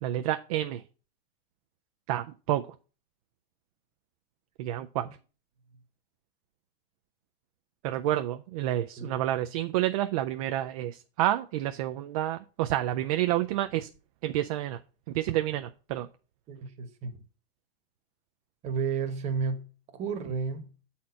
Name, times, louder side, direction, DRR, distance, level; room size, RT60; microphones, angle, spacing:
voice 1, 0.0-0.8 2.1-2.7 4.6-5.1 7.8-13.9 14.2-14.8 15.1-16.1, right 13 dB, 40° right, 0.4 m, -29 dB
voice 2, 16.5-17.2 18.6-19.7 19.9-20.7, right 5 dB, 20° right, 1.1 m, -32 dB
7.5 x 4.2 x 5.6 m
supercardioid pair, 150°, 30 cm